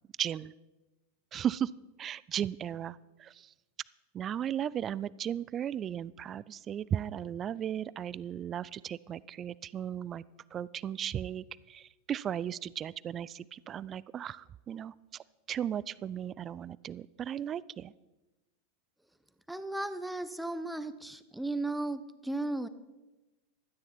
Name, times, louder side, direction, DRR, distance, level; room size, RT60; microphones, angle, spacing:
voice 1, 0.2-0.5 1.3-1.7 2.0-3.5 4.1-10.2 10.5-17.9, right 9 dB, 25° right, 21 dB, 0.3 m, -36 dB
voice 2, 19.5-22.7, right 2 dB, 5° right, 13 dB, 0.8 m, -35 dB
16.5 x 13.5 x 4.3 m, 1.1 s
figure-of-eight pair, 90°, 0 cm